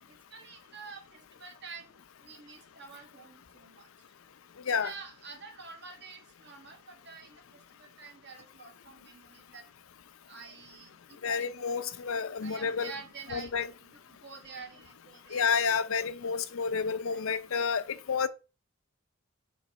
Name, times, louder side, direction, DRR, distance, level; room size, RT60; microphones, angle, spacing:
voice 1, 0.1-1.9 2.2-3.9 4.7-9.6 10.3-11.5 12.4-13.5 13.8-15.7 17.0-17.2, right 5 dB, 55° right, 1.3 m, -48 dB
voice 2, 11.2-12.9 13.3-13.7 15.3-18.3, left 6 dB, 80° left, 0.5 m, -30 dB
5.3 x 3.7 x 5.2 m
head